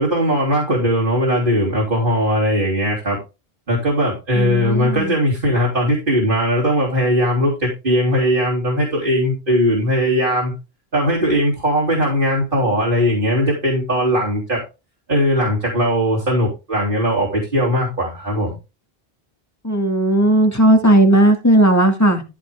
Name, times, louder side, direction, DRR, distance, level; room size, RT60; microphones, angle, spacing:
voice 1, 0.0-3.2 3.7-10.5 10.9-14.6 15.1-18.6, equal, 55° right, -3 dB, 3.5 m, -19 dB
voice 2, 4.4-5.2 19.6-22.2, right 1 dB, 15° left, 3 dB, 2.1 m, -15 dB
14.0 x 5.7 x 3.6 m, 0.28 s
omnidirectional pair, 1.1 m